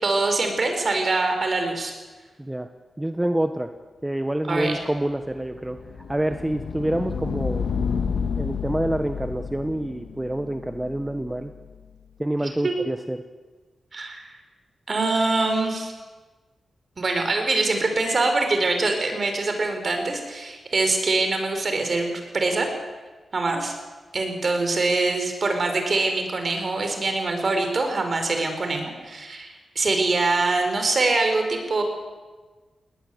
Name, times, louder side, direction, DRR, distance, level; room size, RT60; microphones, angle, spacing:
voice 1, 0.0-1.9 4.5-4.8 12.4-12.8 13.9-14.4 14.9-15.9 17.0-22.7 23.3-23.7 24.1-31.8, right 3 dB, 55° right, 5 dB, 5.3 m, -24 dB
voice 2, 3.0-3.7 4.0-5.8 6.1-7.7 8.4-11.5 12.2-13.2, right 1 dB, 15° right, 7 dB, 1.4 m, -27 dB
sound 1, 5.1-11.8, left 6 dB, 80° left, 1.7 m, -31 dB
19.5 x 19.5 x 8.2 m, 1.3 s
cardioid pair, 50°, 0 cm